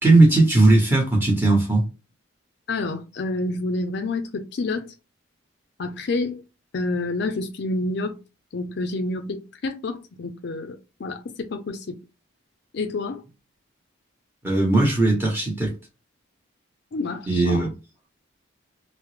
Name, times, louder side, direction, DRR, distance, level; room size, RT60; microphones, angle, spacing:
voice 1, 0.0-1.8 14.4-15.7 17.3-17.7, right 2 dB, 10° right, 1.1 m, -18 dB
voice 2, 2.7-4.9 5.8-6.4 6.7-8.2 8.5-12.0 12.7-13.2 16.9-17.7, left 2 dB, 55° left, 0.4 m, -28 dB
3.5 x 2.0 x 3.2 m
head